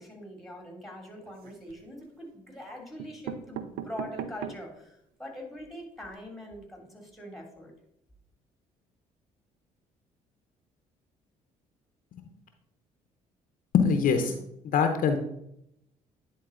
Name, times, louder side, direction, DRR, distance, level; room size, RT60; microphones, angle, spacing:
voice 1, 0.0-7.7, equal, ahead, 1 dB, 2.8 m, -43 dB
sound 1, 1.2-1.9 2.6-2.7 3.0-4.8 5.3-5.4 5.6-5.7 6.0-6.1, right 9 dB, 80° right, 0.5 m, -39 dB
voice 2, 13.7-14.4 14.6-15.2, left 6 dB, 65° left, 6 dB, 0.8 m, -23 dB
10.0 x 4.0 x 3.8 m, 0.79 s
supercardioid pair, 60°, 15 cm